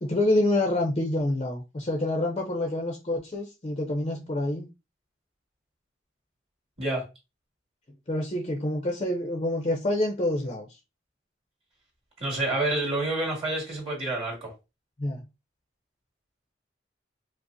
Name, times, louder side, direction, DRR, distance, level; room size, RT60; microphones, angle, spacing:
voice 1, 0.0-4.7 8.1-10.8 15.0-15.2, left 1 dB, 30° left, 0.5 m, -27 dB
voice 2, 12.2-14.5, right 2 dB, 35° right, 1.9 m, -28 dB
4.9 x 2.0 x 2.6 m
head